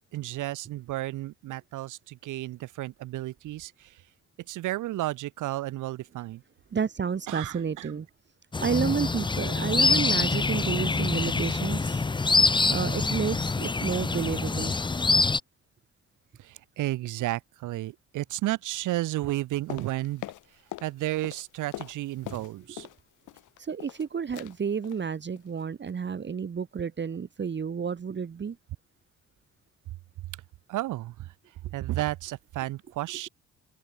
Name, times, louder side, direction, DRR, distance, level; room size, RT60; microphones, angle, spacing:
voice 1, 0.1-3.9 4.5-6.4 7.3-7.9 16.4-20.2 20.8-22.9 30.7-31.3 31.7-33.3, right 16 dB, 80° right, 1.1 m, -32 dB
voice 2, 6.7-8.1 8.6-12.0 12.7-14.7 22.2-22.4 23.6-28.6, right 6 dB, 35° right, 1.7 m, -31 dB
sound 1, 8.5-15.4, left 3 dB, 15° left, 0.7 m, -25 dB
sound 2, 19.7-20.9 21.2-23.0 23.3-24.0 24.3-24.6 24.8-25.1 25.4-25.6 25.9-26.0, left 15 dB, 80° left, 1.1 m, -42 dB
open air
cardioid pair, 90°, 30 cm